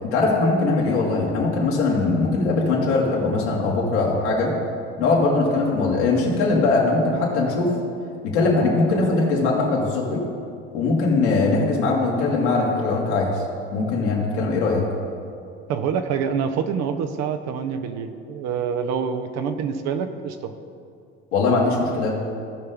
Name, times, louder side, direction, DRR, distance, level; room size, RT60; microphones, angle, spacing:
voice 1, 0.0-4.5 5.0-7.7 8.2-10.2 10.7-13.4 13.7-14.8 21.3-22.1, left 3 dB, 75° left, -4 dB, 2.4 m, -21 dB
voice 2, 15.7-20.5, right 6 dB, 50° right, 7 dB, 0.8 m, -26 dB
16.5 x 5.5 x 3.7 m, 2.4 s
hypercardioid pair, 70°, 33 cm